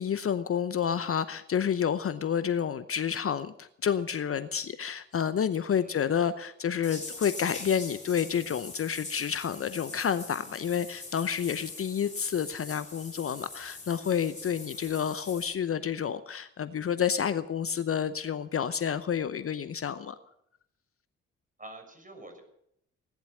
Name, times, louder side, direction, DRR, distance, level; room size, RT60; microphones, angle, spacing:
voice 1, 0.0-20.2, left 8 dB, 40° left, 13 dB, 0.8 m, -29 dB
voice 2, 5.7-6.0 21.6-22.4, right 2 dB, 25° right, 5 dB, 6.6 m, -48 dB
sound 1, 6.8-15.5, left 3 dB, 20° left, 4.0 m, -43 dB
17.5 x 11.5 x 6.2 m, 0.74 s
hypercardioid pair, 40°, 34 cm